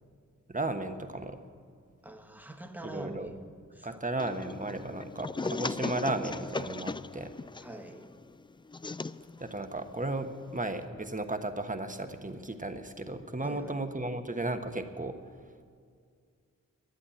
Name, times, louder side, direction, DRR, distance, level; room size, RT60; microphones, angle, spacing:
voice 1, 0.5-1.4 2.8-3.3 3.8-7.3 9.4-15.2, right 2 dB, 25° right, 7 dB, 1.3 m, -35 dB
voice 2, 2.0-3.4 3.7-4.0 7.6-8.1 13.4-13.8, right 1 dB, 5° right, 5 dB, 1.6 m, -44 dB
sound 1, 4.2-10.8, left 3 dB, 15° left, 0.3 m, -38 dB
11.5 x 8.5 x 9.8 m, 2.2 s
cardioid pair, 50°, 32 cm